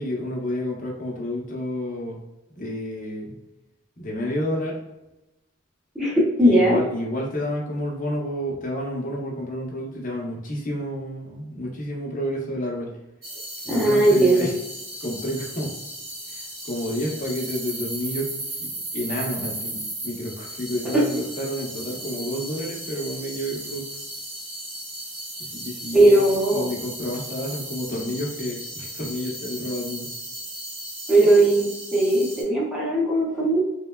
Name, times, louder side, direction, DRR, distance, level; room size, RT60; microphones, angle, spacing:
voice 1, 0.0-2.2 2.6-3.3 4.0-4.8 6.4-12.9 13.6-14.5 15.0-15.8 16.3-18.3 18.6-23.9 25.4-30.1, equal, 45° left, -2 dB, 0.7 m, -30 dB
voice 2, 5.9-6.8 13.7-14.5 20.9-21.0 25.9-26.6 31.1-33.6, right 1 dB, 5° right, -7 dB, 0.8 m, -18 dB
sound 1, 13.2-32.4, right 1 dB, 50° right, 0.9 m, -36 dB
3.1 x 2.1 x 2.2 m, 0.94 s
head